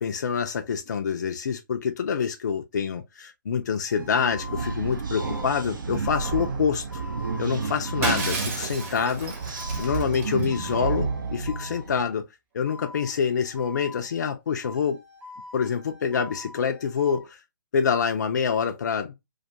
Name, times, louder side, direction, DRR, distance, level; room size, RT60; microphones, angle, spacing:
voice 1, 0.0-6.9 7.4-12.3 12.5-15.0 15.5-17.4 17.7-19.1, left 6 dB, 55° left, 0.4 m, -26 dB
sound 1, 3.9-12.2 12.7-14.4 14.6-17.3, left 3 dB, 15° right, 0.5 m, -45 dB
sound 2, 4.0-12.0, right 4 dB, 65° right, 0.5 m, -31 dB
Shatter, 8.0-10.7, right 4 dB, 40° right, 0.8 m, -32 dB
2.2 x 2.2 x 2.7 m
figure-of-eight pair, 135°, 11 cm